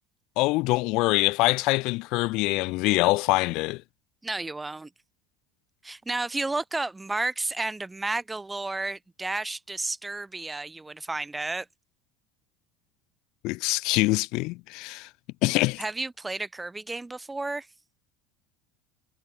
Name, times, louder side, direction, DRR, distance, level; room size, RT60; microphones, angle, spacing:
voice 1, 0.4-3.8 13.4-15.1 15.4-15.8, left 23 dB, 60° left, 0.4 m, -24 dB
voice 2, 4.2-4.9 5.8-11.7 15.8-17.7, right 2 dB, 10° right, 0.4 m, -32 dB
cardioid pair, 145°, 0 cm